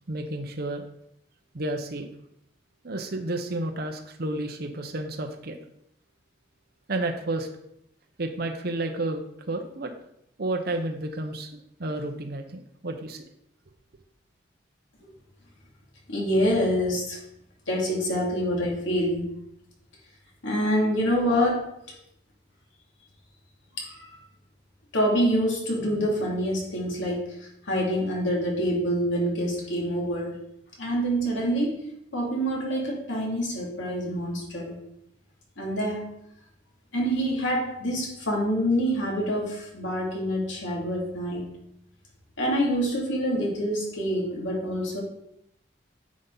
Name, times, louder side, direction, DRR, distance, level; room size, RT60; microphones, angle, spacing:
voice 1, 0.1-0.8 1.5-2.1 2.8-5.6 6.9-7.5 8.2-9.9 10.4-11.5 11.8-13.2, right 2 dB, 50° right, 4 dB, 0.8 m, -31 dB
voice 2, 16.1-17.2 17.7-19.3 20.4-21.7 23.8-24.2 24.9-30.4 30.8-31.8 32.1-34.8 35.6-36.1 36.9-41.5 42.4-45.0, equal, 75° left, -2 dB, 2.5 m, -26 dB
9.7 x 5.5 x 3.9 m, 0.76 s
head